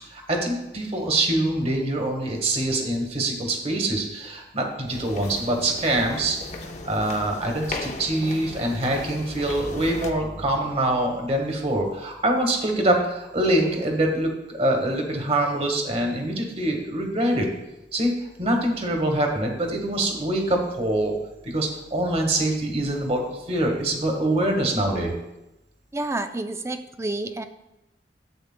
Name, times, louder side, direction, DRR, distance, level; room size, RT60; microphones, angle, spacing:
voice 1, 0.1-6.4 6.8-17.5 17.9-18.1 18.4-21.1 21.4-25.1, right 1 dB, 35° right, 2 dB, 1.4 m, -24 dB
sound 1, 4.9-10.1, left 2 dB, 40° left, 0.8 m, -37 dB
voice 2, 25.9-27.5, right 2 dB, 15° right, 8 dB, 0.4 m, -29 dB
12.5 x 8.1 x 2.2 m, 0.94 s
head